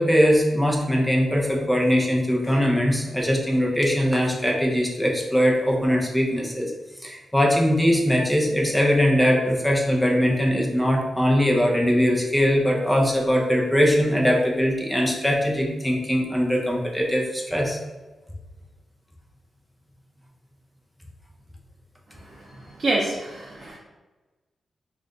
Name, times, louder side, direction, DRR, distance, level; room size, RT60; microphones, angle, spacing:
voice 1, 0.0-6.7 7.0-17.8, equal, 5° left, -1 dB, 0.8 m, -21 dB
voice 2, 22.3-23.8, right 2 dB, 45° right, -4 dB, 0.7 m, -28 dB
3.2 x 2.5 x 4.0 m, 1.2 s
cardioid pair, 70°, 0 cm